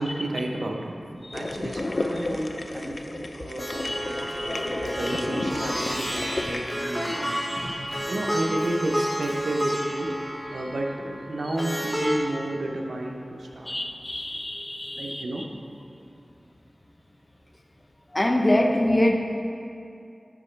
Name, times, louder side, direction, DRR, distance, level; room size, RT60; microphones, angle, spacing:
voice 1, 0.0-7.3 8.1-10.1 10.5-13.7 15.0-15.5, right 1 dB, 90° right, 1 dB, 0.7 m, -32 dB
Underwater Sound, 1.3-6.7, left 2 dB, 55° left, 0.4 m, -32 dB
Plucked string instrument, 3.6-12.2, equal, 5° right, 1.1 m, -30 dB
voice 2, 3.8-4.7 5.0-5.4 6.3-8.1 12.0-12.1 13.7-15.2 18.1-19.1, left 1 dB, 30° left, 2 dB, 0.7 m, -27 dB
9.6 x 5.8 x 3.3 m, 2.6 s
wide cardioid pair, 55°, 0 cm